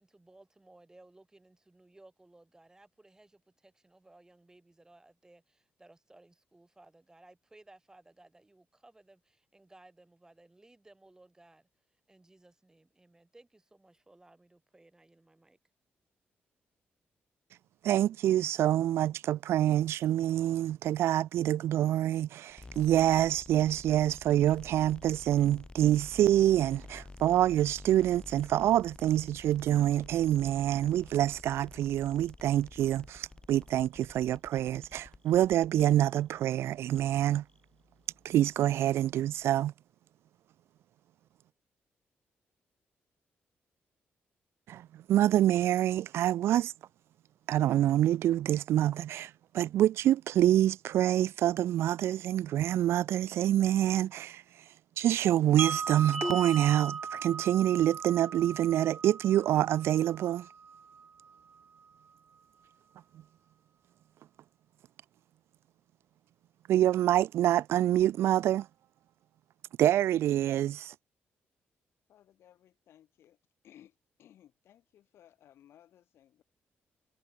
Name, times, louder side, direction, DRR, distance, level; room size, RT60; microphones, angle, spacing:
voice 1, 0.0-11.7 12.1-15.6, right 2 dB, 15° right, 3.4 m, -59 dB
voice 2, 17.8-37.4 38.2-39.7 44.7-46.7 47.5-54.4 55.0-60.5 66.7-68.7 69.8-70.9, right 12 dB, 80° right, 0.3 m, -26 dB
sound 1, 22.5-39.6, left 2 dB, 20° left, 6.9 m, -51 dB
Wind chime, 55.6-61.6, right 5 dB, 40° right, 0.7 m, -39 dB
sound 2, 56.1-57.0, equal, 5° left, 1.0 m, -37 dB
voice 3, 72.1-73.4 73.6-76.4, left 11 dB, 80° left, 2.5 m, -60 dB
cardioid pair, 90°, 4 cm